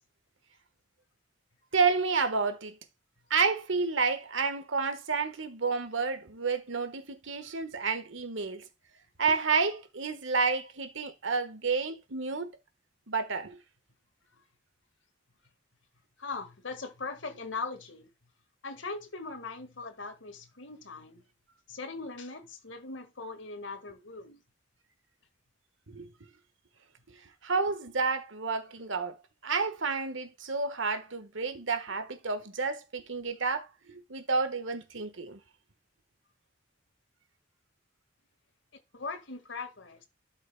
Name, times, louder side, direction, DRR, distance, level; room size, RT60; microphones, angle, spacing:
voice 1, 1.7-2.8 3.3-8.7 9.2-12.5 13.1-13.6 25.9-26.1 27.4-29.2 29.4-35.4, right 4 dB, 75° right, 1.4 m, -30 dB
voice 2, 16.2-18.1 18.6-21.2 21.7-24.4 38.9-40.0, left 4 dB, 70° left, 1.7 m, -40 dB
12.5 x 6.2 x 2.3 m
head